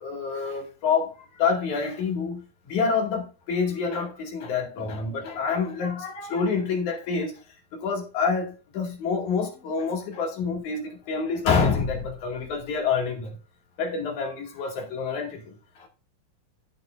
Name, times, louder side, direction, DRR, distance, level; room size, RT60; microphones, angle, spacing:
voice 1, 0.0-7.4 7.7-13.4 13.8-15.9, left 5 dB, 60° left, 3.5 m, -27 dB
14.0 x 6.9 x 2.6 m
omnidirectional pair, 3.9 m